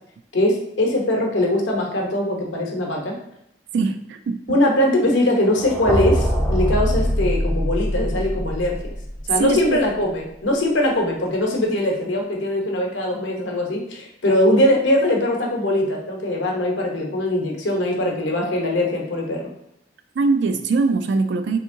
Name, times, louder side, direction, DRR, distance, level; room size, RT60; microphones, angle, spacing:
voice 1, 0.3-3.1 4.5-8.9 9.2-19.4, left 1 dB, 85° left, 0 dB, 0.8 m, -21 dB
voice 2, 3.7-4.6 9.4-9.8 20.2-21.6, right 3 dB, 65° right, 8 dB, 0.3 m, -22 dB
sound 1, 5.5-9.5, equal, 10° left, 0.4 m, -23 dB
3.6 x 2.8 x 2.6 m, 0.77 s
head